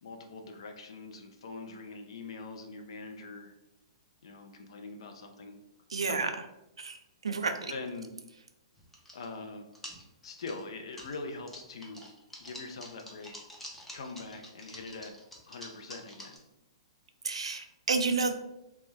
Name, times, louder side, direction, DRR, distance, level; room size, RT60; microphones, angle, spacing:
voice 1, 0.0-3.6 4.2-5.5 7.7-8.1 9.1-9.7 10.2-12.1 12.4-13.4 13.9-15.2 15.5-16.4, left 3 dB, 70° left, 5 dB, 0.4 m, -43 dB
voice 2, 5.9-6.3 6.8-7.7 17.2-18.3, right 4 dB, 85° right, 7 dB, 0.3 m, -30 dB
sound 1, 8.8-9.4 9.7-11.2 11.5-16.4, left 1 dB, 5° left, 0.4 m, -47 dB
2.1 x 2.1 x 3.1 m, 0.90 s
hypercardioid pair, 125°, 3 cm